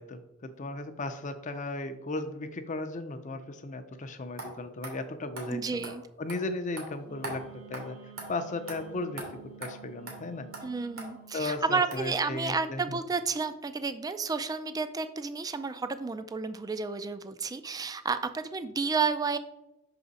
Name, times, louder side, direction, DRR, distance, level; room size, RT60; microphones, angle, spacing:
voice 1, 0.0-7.4 7.7-8.0 8.3-9.2 9.6-10.5 11.3-13.0, left 2 dB, 35° left, 9 dB, 0.5 m, -36 dB
sound 1, 4.4-4.5 4.8-4.9 5.4-5.5 5.8-5.9 6.3-6.4 6.8-6.9 7.2-7.4 7.7-7.8 8.2-8.3 8.7-8.8 9.2-9.3 9.6-9.7 10.1-10.2 10.5-10.6 11.0-11.1 11.5-11.6 11.9-12.0, right 2 dB, 90° right, 2.2 m, -39 dB
voice 2, 5.5-6.0 10.6-19.4, right 4 dB, 20° right, 11 dB, 0.3 m, -31 dB
Wind instrument woodwind instrument, 7.0-11.4, right 9 dB, 70° right, 2.0 m, -51 dB
5.9 x 4.9 x 4.0 m, 0.94 s
head